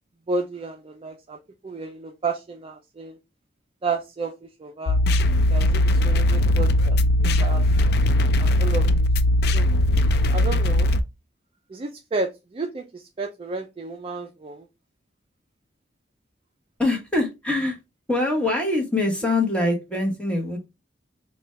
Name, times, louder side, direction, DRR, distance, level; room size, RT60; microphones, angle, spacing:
voice 1, 0.3-1.4 1.6-3.2 3.8-5.0 5.5-7.7 8.4-9.1 9.5-9.7 10.3-10.9 11.7-14.7, right 3 dB, 30° right, 3 dB, 0.4 m, -32 dB
sound 1, 4.9-11.0, left 1 dB, 60° left, 0.3 m, -19 dB
voice 2, 16.8-17.8 18.1-20.6, left 2 dB, 5° left, 0 dB, 1.0 m, -23 dB
4.1 x 2.3 x 3.1 m, 0.24 s
head